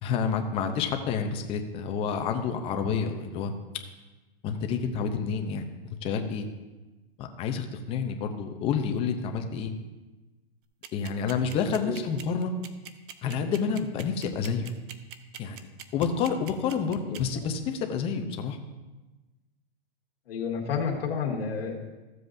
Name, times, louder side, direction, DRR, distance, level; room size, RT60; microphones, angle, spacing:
voice 1, 0.0-3.5 4.4-6.5 7.2-9.7 10.9-12.5 13.2-14.7 15.4-15.6 15.9-18.6, left 6 dB, 20° left, 5 dB, 0.6 m, -29 dB
sound 1, 10.8-17.2, right 9 dB, 55° right, 0.7 m, -42 dB
voice 2, 20.3-21.7, left 6 dB, 75° left, 0 dB, 1.9 m, -30 dB
14.0 x 7.6 x 2.6 m, 1.2 s
hypercardioid pair, 150°, 30 cm